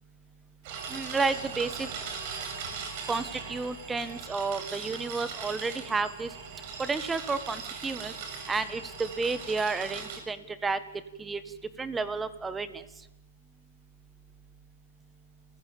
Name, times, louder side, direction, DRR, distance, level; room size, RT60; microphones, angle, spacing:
sound 1, 0.6-10.2, right 5 dB, 45° right, 7.2 m, -39 dB
voice 1, 0.9-1.9 3.1-6.3 6.8-8.1 8.5-10.8 11.2-11.4 11.8-12.7, right 4 dB, 10° right, 13 dB, 1.4 m, -31 dB
28.5 x 16.0 x 8.7 m, 0.89 s
hypercardioid pair, 145°, 0 cm